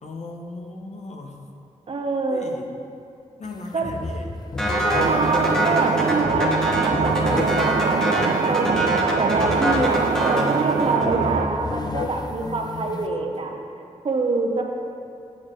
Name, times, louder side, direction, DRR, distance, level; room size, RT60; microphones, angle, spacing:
voice 1, 0.0-1.4 2.3-2.7 3.4-4.5 12.4-13.3, left 3 dB, 65° left, 2 dB, 0.8 m, -37 dB
voice 2, 1.9-2.5 3.7-3.9 4.7-6.5 6.8-8.8 9.2-13.5 14.0-14.6, right 3 dB, 50° right, 3 dB, 0.7 m, -26 dB
sound 1, 3.4-3.6 3.8-13.1, left 3 dB, 35° left, 0.4 m, -33 dB
sound 2, 4.6-11.3, equal, 5° left, 1.0 m, -26 dB
sound 3, 4.9-11.5, right 5 dB, 80° right, 0.5 m, -23 dB
8.6 x 6.4 x 3.7 m, 2.5 s
wide cardioid pair, 130°, 12 cm